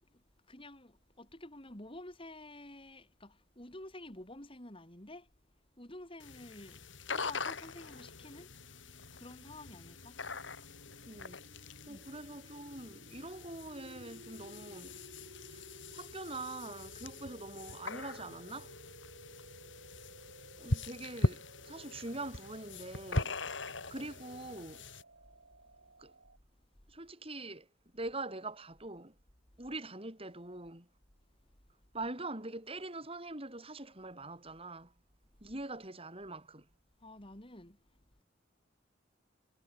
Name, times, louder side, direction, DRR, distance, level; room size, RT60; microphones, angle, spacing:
voice 1, 0.1-5.3 5.8-6.8 7.1-8.5 9.1-10.2 11.9-12.1 20.0-20.1 37.0-38.0, left 1 dB, 30° left, 4.2 m, -50 dB
sound 1, 6.2-25.0, left 2 dB, 75° left, 4.0 m, -41 dB
sound 2, 8.1-26.4, right 1 dB, 70° right, 6.0 m, -57 dB
voice 2, 11.1-11.4 11.9-15.0 15.5-15.6 15.9-18.7 20.6-23.4 23.9-24.8 26.0-26.1 26.9-27.7 27.9-29.1 29.6-30.9 31.9-34.9 35.4-36.7, right 2 dB, 30° right, 6.0 m, -43 dB
head